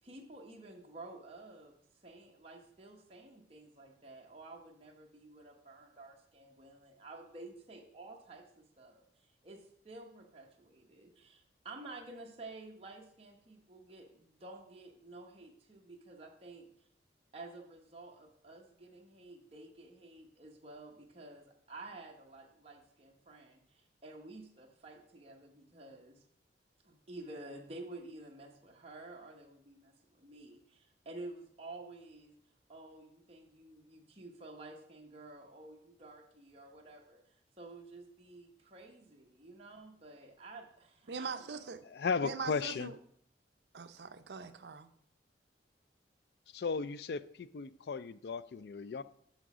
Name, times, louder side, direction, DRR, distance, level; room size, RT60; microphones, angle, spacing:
voice 1, 0.0-16.7 17.3-26.2 26.8-32.3 32.7-41.7, right 2 dB, 35° right, 1.0 m, -51 dB
voice 2, 41.1-41.8 42.2-43.0 43.7-44.9, right 5 dB, 70° right, 0.6 m, -42 dB
voice 3, 41.8-43.0 46.5-49.0, left 5 dB, 60° left, 0.4 m, -36 dB
6.2 x 5.8 x 6.0 m
head